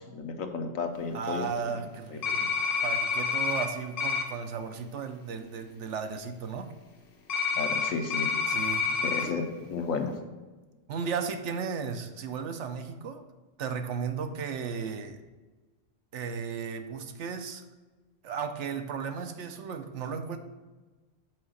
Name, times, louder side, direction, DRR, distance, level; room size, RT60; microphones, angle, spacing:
voice 1, 0.1-1.8 2.1-2.2 7.6-8.3 9.0-10.1, left 4 dB, 85° left, 5 dB, 1.3 m, -33 dB
voice 2, 1.1-2.5 2.8-6.7 8.5-8.8 9.2-9.3 10.9-13.2 13.6-15.2 16.1-17.6 18.2-20.4, right 6 dB, 65° right, 7 dB, 0.9 m, -35 dB
sound 1, 2.2-3.7 4.0-4.2 7.3-9.2, left 5 dB, 50° left, 1.0 m, -28 dB
6.3 x 4.8 x 6.3 m, 1.2 s
omnidirectional pair, 1.4 m